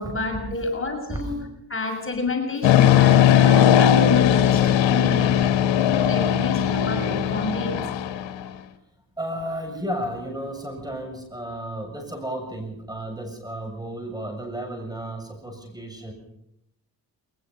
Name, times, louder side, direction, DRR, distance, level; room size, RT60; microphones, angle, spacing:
voice 1, 0.0-1.4 1.7-7.8, left 3 dB, 25° left, 2 dB, 6.3 m, -29 dB
voice 2, 1.1-1.7 9.2-16.1, right 1 dB, 10° right, 4 dB, 7.5 m, -33 dB
sound 1, 2.6-8.4, left 10 dB, 65° left, 1.9 m, -18 dB
22.0 x 21.0 x 5.6 m, 0.79 s
hypercardioid pair, 50°, 48 cm